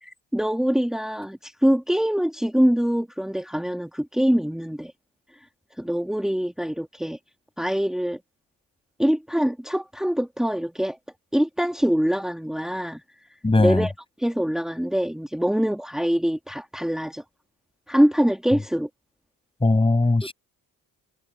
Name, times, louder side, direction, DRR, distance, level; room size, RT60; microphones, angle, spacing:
voice 1, 0.0-4.9 5.8-7.2 7.6-8.2 9.0-11.0 11.3-13.0 13.6-13.9 14.2-17.2 17.9-18.9, equal, ahead, 2.2 m, -24 dB
voice 2, 13.4-13.9 19.6-20.3, left 2 dB, 15° left, 6.5 m, -19 dB
cardioid pair, 120°, 37 cm